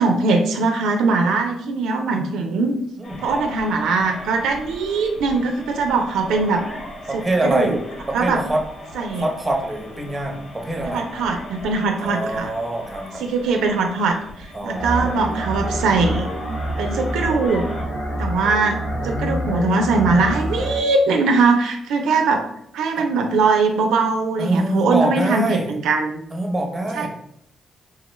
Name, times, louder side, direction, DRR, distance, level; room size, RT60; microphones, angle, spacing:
voice 1, 0.0-2.7 3.2-6.7 7.1-7.8 8.1-8.4 8.9-9.2 10.8-12.5 13.2-16.3 16.8-17.7 18.2-18.8 19.0-22.4 22.7-26.2 26.9-27.1, right 4 dB, 90° right, 4 dB, 0.4 m, -21 dB
sound 1, 3.0-17.8, left 1 dB, 45° left, 0.7 m, -38 dB
voice 2, 7.1-7.8 8.1-8.6 9.2-11.0 12.0-13.2 14.5-15.2 18.9-20.2 23.0-23.1 24.4-25.7 26.3-27.1, right 1 dB, 20° right, 1 dB, 0.7 m, -25 dB
sound 2, 14.7-20.8, right 1 dB, 75° left, 1.5 m, -27 dB
3.4 x 2.2 x 3.1 m, 0.72 s
cardioid pair, 95°, 0 cm